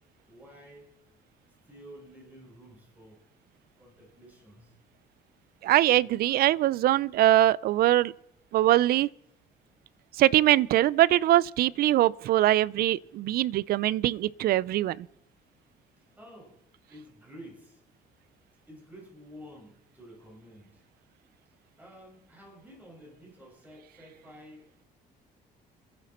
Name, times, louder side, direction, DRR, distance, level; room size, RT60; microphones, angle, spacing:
voice 1, 0.3-0.9 1.6-4.7 16.0-16.6 16.9-17.8 18.7-20.8 21.8-24.9, equal, 10° right, 6.0 m, -51 dB
voice 2, 5.6-8.1 8.5-9.1 10.2-15.1, right 14 dB, 65° right, 0.5 m, -22 dB
27.5 x 10.5 x 4.3 m
cardioid pair, 110°, 17 cm